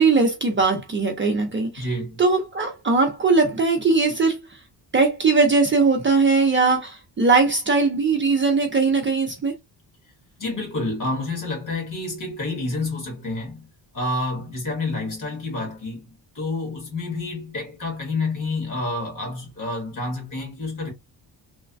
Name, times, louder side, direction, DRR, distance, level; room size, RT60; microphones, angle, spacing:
voice 1, 0.0-1.9 2.2-4.6 4.9-9.5, right 4 dB, 30° right, 0.5 m, -20 dB
voice 2, 1.8-2.2 10.4-13.7 13.9-20.9, left 2 dB, 45° left, 1.6 m, -29 dB
3.2 x 2.1 x 2.4 m
wide cardioid pair, 170°, 43 cm